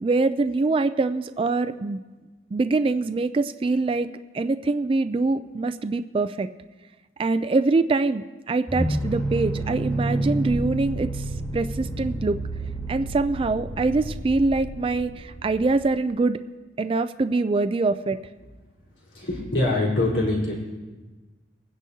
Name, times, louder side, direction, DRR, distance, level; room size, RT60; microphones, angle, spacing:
voice 1, 0.0-2.0 2.5-6.5 7.2-11.3 11.5-12.4 12.9-16.4 16.8-18.2, right 3 dB, 30° right, 10 dB, 0.3 m, -24 dB
sound 1, 8.7-15.9, right 2 dB, 15° left, 1.9 m, -30 dB
voice 2, 19.1-20.6, left 2 dB, 85° left, -5 dB, 3.9 m, -24 dB
23.0 x 9.9 x 2.8 m, 1.3 s
head